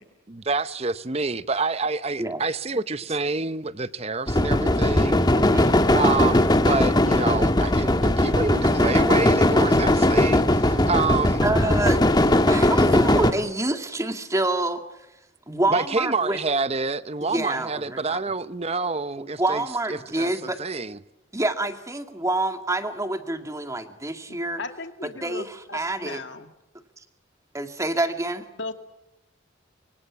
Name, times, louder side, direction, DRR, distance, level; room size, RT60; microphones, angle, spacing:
voice 1, 0.3-5.3 5.9-11.4 15.7-19.6 19.9-21.0, right 4 dB, 30° right, 0.8 m, -27 dB
sound 1, 4.3-13.3, left 1 dB, 20° left, 1.5 m, -19 dB
voice 2, 5.3-5.8 11.4-12.1 12.5-14.8 15.5-16.4 17.2-18.2 19.2-20.6 21.3-24.6 25.2-26.2 27.5-28.5, right 2 dB, 15° right, 2.1 m, -27 dB
voice 3, 24.3-26.5 28.6-28.7, left 3 dB, 60° left, 2.2 m, -37 dB
26.5 x 24.5 x 7.2 m
head